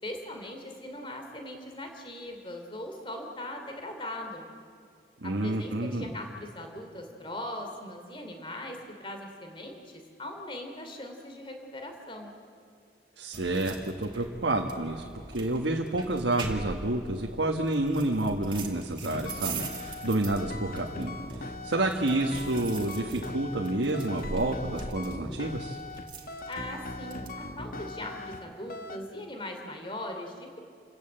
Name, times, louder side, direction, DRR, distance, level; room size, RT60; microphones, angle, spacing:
voice 1, 0.0-4.5 5.2-12.4 26.5-30.6, left 1 dB, 30° left, 4 dB, 3.0 m, -40 dB
voice 2, 5.2-6.1 13.2-15.0 15.3-25.8, right 2 dB, 90° right, 1 dB, 1.4 m, -29 dB
sound 1, 13.3-27.4, right 3 dB, 25° right, 2.1 m, -42 dB
sound 2, 19.1-28.4 28.7-29.0, left 2 dB, 50° left, 1.1 m, -40 dB
29.0 x 14.5 x 8.8 m, 2.3 s
head